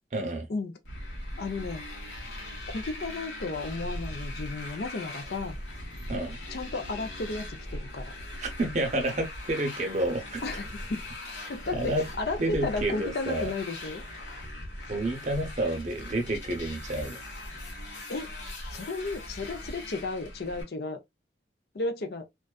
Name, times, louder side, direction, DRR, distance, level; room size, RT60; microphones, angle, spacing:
voice 1, 0.1-0.5 6.1-6.4 8.4-10.4 11.7-12.1 12.4-13.5 14.9-17.2, right 1 dB, 40° right, 0.6 m, -29 dB
Motorcycle, 0.9-20.6, left 1 dB, 90° left, 1.1 m, -40 dB
voice 2, 1.4-1.9 2.7-5.6 6.5-7.5 7.7-8.1 10.4-11.0 11.5-14.0 18.1-18.3 18.7-21.0 21.7-22.2, left 3 dB, 60° left, 0.5 m, -33 dB
2.5 x 2.3 x 2.2 m
head